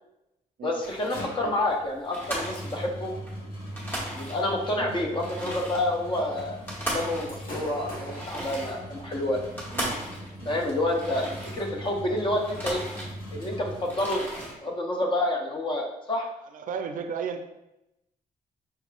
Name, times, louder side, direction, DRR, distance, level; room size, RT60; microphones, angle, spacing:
voice 1, 0.6-3.1 4.2-6.6 6.9-9.4 10.4-11.3 11.5-12.8 13.3-16.3, left 1 dB, 35° left, 1 dB, 0.7 m, -28 dB
sound 1, 0.8-1.3 1.7-1.8 2.1-3.3 3.6-4.7 5.1-11.9 12.3-13.5 13.8-14.6, right 1 dB, 15° left, 1.0 m, -37 dB
sound 2, 0.9-14.2, equal, 90° left, 1.3 m, -41 dB
Gunshot gunfire / Fireworks, 7.1-14.1, left 1 dB, 65° left, 1.5 m, -47 dB
voice 2, 16.5-17.4, right 6 dB, 65° right, 7 dB, 0.4 m, -34 dB
5.4 x 3.5 x 2.4 m, 0.89 s
wide cardioid pair, 175°, 15 cm